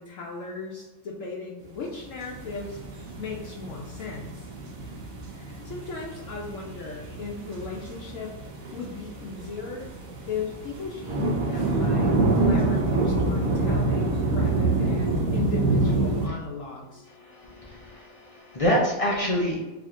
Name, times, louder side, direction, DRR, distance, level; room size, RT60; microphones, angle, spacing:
voice 1, 0.0-4.5 4.9-5.0 5.3-8.4 8.7-9.9 10.3-17.1, left 4 dB, 70° left, -2 dB, 1.0 m, -37 dB
sound 1, 2.0-16.3, right 2 dB, 75° right, 1.3 m, -27 dB
voice 2, 17.1-19.6, equal, 50° left, -3 dB, 0.4 m, -27 dB
3.5 x 2.9 x 3.6 m, 1.1 s
omnidirectional pair, 1.5 m